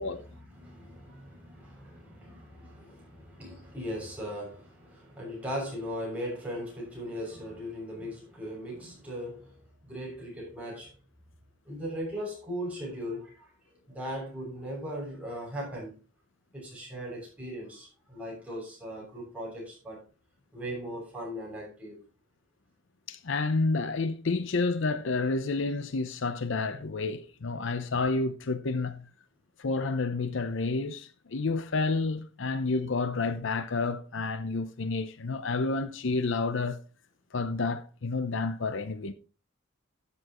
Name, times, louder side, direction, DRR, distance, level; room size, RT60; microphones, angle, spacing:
voice 1, 0.0-10.9 11.6-13.5 13.9-15.9 16.5-20.0 20.5-22.0, equal, 5° right, 6.6 m, -38 dB
voice 2, 23.1-29.1 29.6-36.8 37.3-39.1, left 3 dB, 65° left, 0.7 m, -30 dB
12.5 x 8.6 x 3.0 m
head